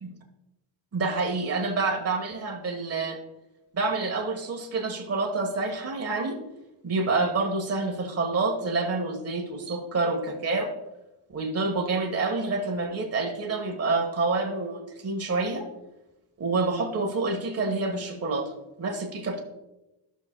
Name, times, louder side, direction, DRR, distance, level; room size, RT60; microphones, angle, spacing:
voice 1, 0.9-3.2 3.7-6.3 6.8-10.7 11.3-15.7 16.4-18.5 18.8-19.4, right 3 dB, 30° right, 2 dB, 1.3 m, -28 dB
13.0 x 6.2 x 2.2 m, 0.95 s
cardioid pair, 105°, 48 cm